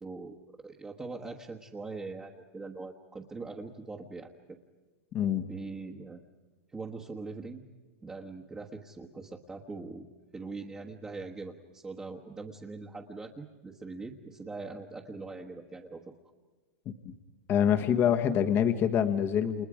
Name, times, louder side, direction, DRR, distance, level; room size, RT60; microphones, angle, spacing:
voice 1, 0.0-4.3 5.5-6.2 6.7-7.6 8.0-10.0 10.3-16.0, right 3 dB, 10° right, -1 dB, 1.4 m, -42 dB
voice 2, 5.1-5.4 16.8-17.1 17.5-19.7, left 9 dB, 30° left, 7 dB, 1.3 m, -26 dB
29.5 x 28.5 x 5.0 m, 1.3 s
supercardioid pair, 145°, 7 cm